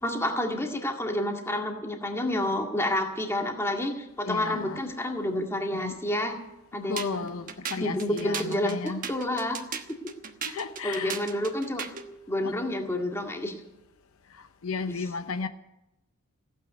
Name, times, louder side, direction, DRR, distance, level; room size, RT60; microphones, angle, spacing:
voice 1, 0.0-6.3 6.7-7.3 7.8-9.6 10.8-11.8 12.3-13.5, left 1 dB, 10° left, 1.9 m, -29 dB
voice 2, 4.3-4.8 5.7-6.0 6.9-9.0 10.5-11.2 12.4-12.6 14.3-15.5, left 4 dB, 70° left, 0.7 m, -34 dB
sound 1, 7.0-12.1, right 6 dB, 40° right, 1.2 m, -37 dB
16.0 x 9.2 x 9.6 m
head